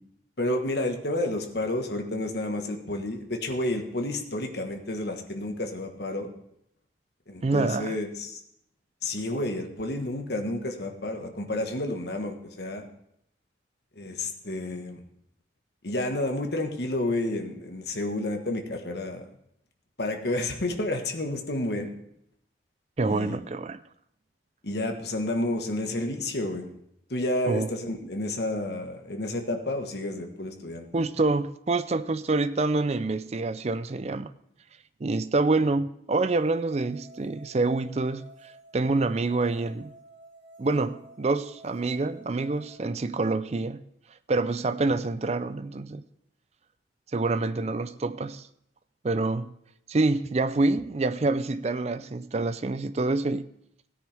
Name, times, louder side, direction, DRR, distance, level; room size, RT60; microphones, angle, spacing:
voice 1, 0.4-6.3 7.3-8.4 9.0-12.9 14.0-15.0 15.8-19.3 20.0-21.9 23.1-23.4 24.6-26.7 27.1-30.9, left 1 dB, 65° left, 1.4 m, -30 dB
voice 2, 7.4-8.0 23.0-23.8 27.5-27.7 30.9-34.3 35.0-38.2 38.7-39.9 40.6-43.8 44.3-46.0 47.1-48.5 49.0-49.5 49.9-53.5, right 3 dB, 35° right, 0.4 m, -26 dB
sound 1, 36.3-42.8, right 2 dB, 80° right, 2.1 m, -52 dB
16.5 x 9.5 x 3.4 m
head